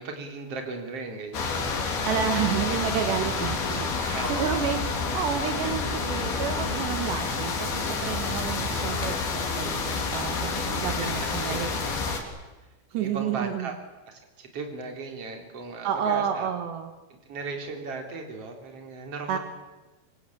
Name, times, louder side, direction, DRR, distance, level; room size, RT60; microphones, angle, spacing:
voice 1, 0.0-1.6 4.1-4.3 5.6-5.7 11.0-11.1 11.5-11.6 12.9-13.8 14.1-16.5 17.3-19.4, right 4 dB, 35° right, 4 dB, 4.2 m, -36 dB
sound 1, 1.3-12.2, left 4 dB, 60° left, 5.2 m, -29 dB
voice 2, 2.1-4.8 5.1-11.7 12.9-13.7 15.8-16.9 19.3-19.4, right 8 dB, 75° right, 7 dB, 3.8 m, -30 dB
27.0 x 24.0 x 8.7 m, 1.2 s
omnidirectional pair, 5.0 m